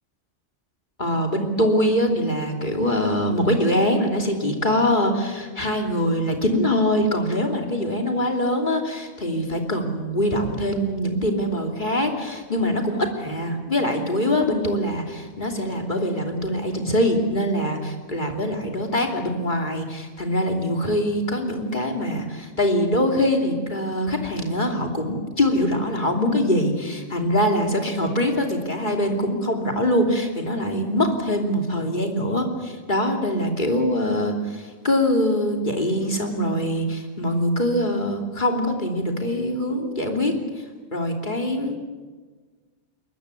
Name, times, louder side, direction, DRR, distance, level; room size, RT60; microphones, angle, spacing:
voice 1, 1.0-40.3 40.9-41.8, equal, 40° left, 3 dB, 3.1 m, -23 dB
22.0 x 21.0 x 8.4 m, 1.4 s
omnidirectional pair, 1.3 m